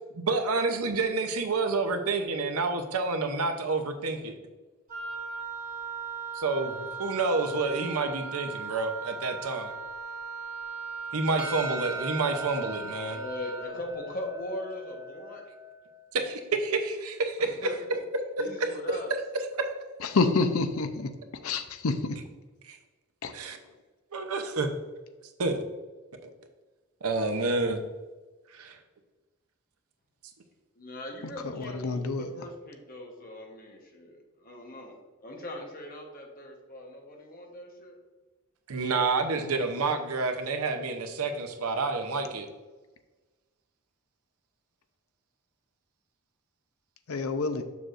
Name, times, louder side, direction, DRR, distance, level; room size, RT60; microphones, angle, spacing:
voice 1, 0.1-4.3 6.3-9.7 11.1-13.2 16.1-17.7 18.4-19.7 22.6-22.8 23.3-23.6 24.1-24.7 25.4-25.6 26.2-26.3 27.0-27.8 28.5-28.8 38.7-42.5, right 3 dB, 85° right, 6 dB, 0.7 m, -29 dB
Wind instrument woodwind instrument, 4.9-13.7, right 5 dB, 40° right, 2.1 m, -38 dB
Percussion, 11.4-16.0, left 1 dB, 20° right, 2.1 m, -41 dB
voice 2, 13.1-15.4 17.4-17.7 18.4-19.1 30.8-34.9 35.2-38.0, left 1 dB, 40° left, 1 dB, 1.2 m, -40 dB
voice 3, 20.1-21.1 21.4-22.2 23.2-23.3 31.5-32.3 47.1-47.6, left 3 dB, 75° left, 9 dB, 0.6 m, -27 dB
6.9 x 6.3 x 2.5 m, 1.2 s
head